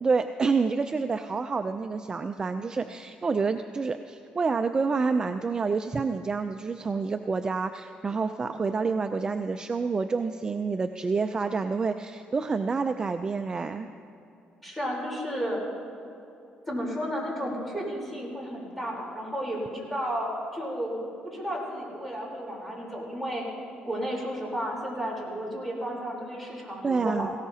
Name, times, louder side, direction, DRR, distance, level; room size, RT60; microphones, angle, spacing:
voice 1, 0.0-13.9 26.8-27.3, right 4 dB, 25° right, 8 dB, 0.4 m, -28 dB
voice 2, 14.6-15.6 16.7-21.0 21.2-23.4 23.8-27.3, equal, 5° left, -4 dB, 3.7 m, -32 dB
19.0 x 17.0 x 2.8 m, 2.8 s
cardioid pair, 115°, 3 cm